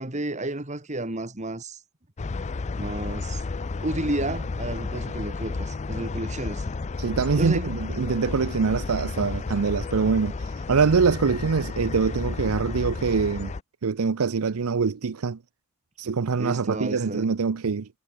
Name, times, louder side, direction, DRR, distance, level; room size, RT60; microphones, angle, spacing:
voice 1, 0.0-1.8 2.7-3.4 3.8-6.6 7.4-7.7 16.4-17.3, right 1 dB, 35° right, 2.1 m, -31 dB
sound 1, 2.2-13.6, left 3 dB, 30° left, 0.4 m, -32 dB
voice 2, 7.0-10.3 10.7-13.5 13.8-15.4 16.0-17.9, right 5 dB, 85° right, 0.6 m, -24 dB
head